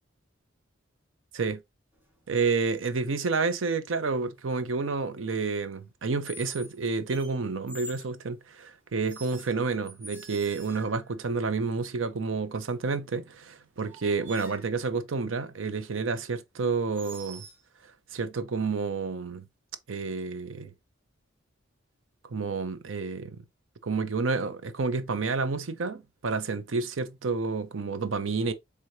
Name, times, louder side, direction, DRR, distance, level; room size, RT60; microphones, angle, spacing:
sound 1, 1.9-2.3 4.0-4.4 6.3-6.8 7.1-8.1 9.1-11.1 13.3-13.4 13.8-14.7 16.9-17.6, right 1 dB, 10° right, 1.0 m, -46 dB
voice 1, 2.3-17.4 18.1-19.4 19.9-20.7 22.3-23.4 23.8-28.5, right 4 dB, 80° right, 0.6 m, -30 dB
4.8 x 3.4 x 2.7 m
head